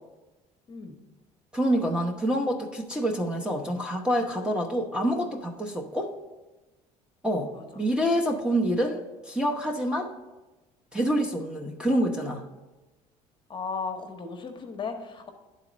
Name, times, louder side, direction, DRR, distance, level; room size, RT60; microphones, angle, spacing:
voice 1, 1.5-6.1 7.2-7.5 7.7-10.1 10.9-12.4, equal, 5° right, 1 dB, 0.9 m, -27 dB
voice 2, 13.5-15.3, left 5 dB, 35° left, 4 dB, 1.0 m, -35 dB
9.7 x 4.1 x 5.2 m, 1.1 s
cardioid pair, 105°, 14 cm